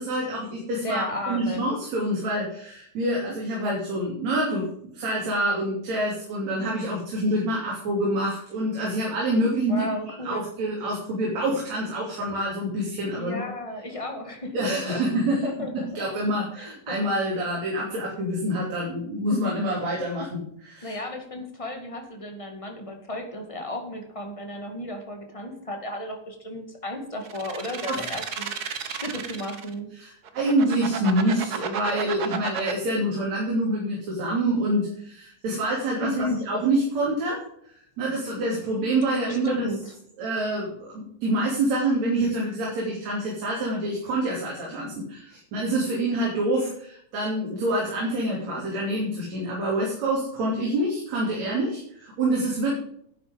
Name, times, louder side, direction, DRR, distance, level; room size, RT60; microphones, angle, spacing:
voice 1, 0.0-13.5 14.5-21.0 27.9-28.1 30.0-37.4 38.0-39.7 40.2-52.8, right 1 dB, 60° right, -3 dB, 4.2 m, -26 dB
voice 2, 0.8-1.6 9.7-10.5 13.2-14.6 14.9-15.0 15.4-16.0 16.5-17.0 20.8-28.5 28.9-29.9 36.0-36.4 39.3-39.9, left 1 dB, 15° left, 3 dB, 1.5 m, -33 dB
sound 1, 27.3-29.7 30.2-32.7, right 7 dB, 85° right, 0.8 m, -32 dB
11.0 x 9.7 x 5.3 m, 0.68 s
omnidirectional pair, 3.5 m